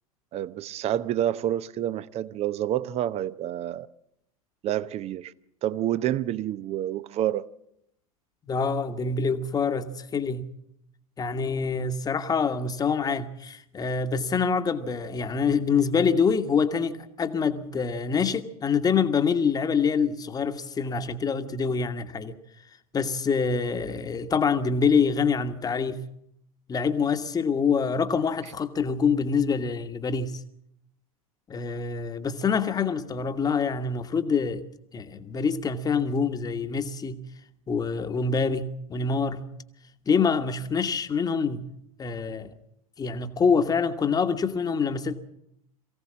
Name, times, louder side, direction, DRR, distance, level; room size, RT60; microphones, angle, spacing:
voice 1, 0.3-3.9 4.6-5.3 5.6-7.5, right 12 dB, 35° right, 0.8 m, -28 dB
voice 2, 8.5-10.5 11.2-22.4 22.9-26.0 26.7-30.4 31.5-34.6 34.9-37.2 37.7-39.5 40.1-41.6 42.0-42.5 43.0-45.2, left 5 dB, 20° left, 1.4 m, -25 dB
22.5 x 16.0 x 7.4 m
figure-of-eight pair, 85°, 19 cm